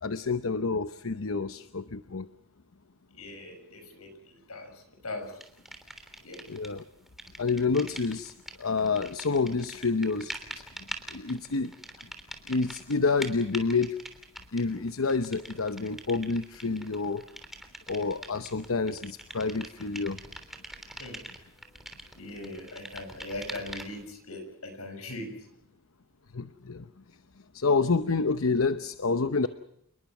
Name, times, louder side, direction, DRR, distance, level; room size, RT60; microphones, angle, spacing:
voice 1, 0.0-2.3 6.5-6.8 7.4-10.3 11.1-11.7 12.5-14.0 14.5-17.2 17.9-20.2 26.3-26.8 27.5-29.5, left 4 dB, 70° left, 11 dB, 0.9 m, -28 dB
voice 2, 3.1-5.4 6.2-6.4 21.0-21.2 22.2-25.5, left 2 dB, 90° left, 7 dB, 6.8 m, -40 dB
sound 1, 5.4-6.8 7.1-24.1, right 1 dB, ahead, 3.3 m, -44 dB
29.0 x 21.0 x 6.1 m, 0.73 s
head